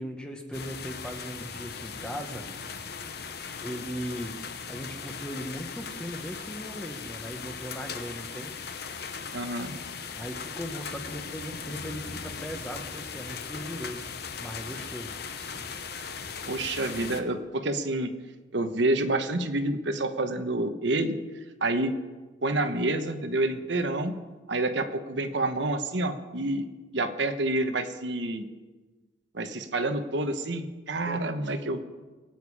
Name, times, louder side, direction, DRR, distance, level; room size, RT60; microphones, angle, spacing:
voice 1, 0.0-2.6 3.6-4.3 4.7-8.5 10.1-14.1 14.4-15.8 31.1-31.2, equal, 5° left, 4 dB, 1.3 m, -38 dB
sound 1, 0.5-17.2, left 6 dB, 55° left, 1.0 m, -38 dB
voice 2, 9.3-9.8 16.5-18.1 18.5-21.2 21.6-21.9 22.4-24.1 24.5-26.6 26.9-28.5 29.3-31.8, right 2 dB, 70° right, 7 dB, 1.1 m, -28 dB
23.0 x 9.2 x 4.9 m, 1.3 s
head